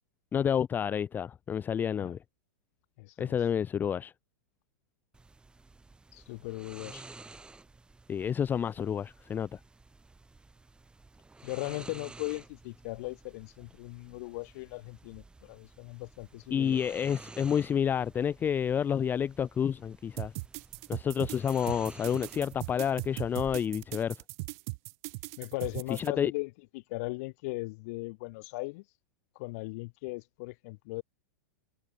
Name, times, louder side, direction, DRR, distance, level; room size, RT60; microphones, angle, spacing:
voice 1, 0.3-2.2 3.2-4.1 8.1-9.6 16.5-20.3 20.9-24.2 25.9-26.3, left 8 dB, 20° left, 0.4 m, -29 dB
voice 2, 3.0-3.4 6.1-7.0 11.4-16.8 25.4-28.8 29.3-31.0, left 25 dB, 55° left, 2.6 m, -38 dB
sound 1, 5.1-23.6, right 3 dB, 10° right, 4.7 m, -52 dB
sound 2, 20.2-26.1, right 27 dB, 50° right, 0.8 m, -39 dB
hypercardioid pair, 115°, 10 cm